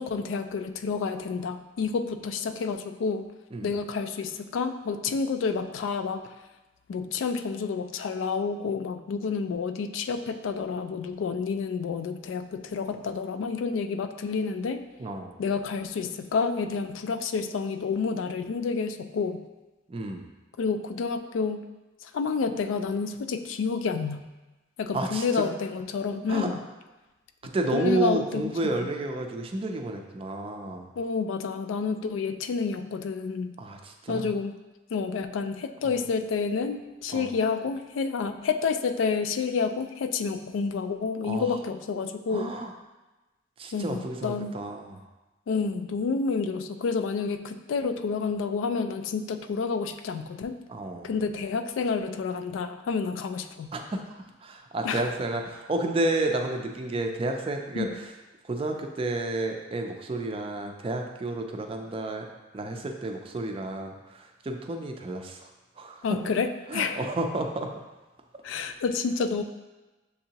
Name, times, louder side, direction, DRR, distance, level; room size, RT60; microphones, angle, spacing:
voice 1, 0.0-3.3 3.6-6.2 6.9-14.8 15.4-19.4 20.6-21.7 22.0-24.2 24.8-26.5 27.7-28.9 31.0-33.5 34.1-34.5 34.9-42.5 43.7-44.6 45.5-50.6 51.0-53.7 54.8-55.1 57.8-57.9 66.0-67.0 68.4-69.4, left 5 dB, 85° left, 9 dB, 0.3 m, -29 dB
voice 2, 15.0-15.4 19.9-20.3 24.9-25.5 26.3-26.5 27.4-30.9 33.6-34.3 35.9-36.0 37.1-37.3 41.2-41.5 42.3-42.7 43.6-45.0 50.7-51.1 53.7-58.1 58.4-62.3 62.5-65.5 65.8-66.1 66.7-67.7, right 2 dB, 30° right, 4 dB, 0.4 m, -31 dB
6.6 x 2.7 x 2.8 m, 1.1 s
head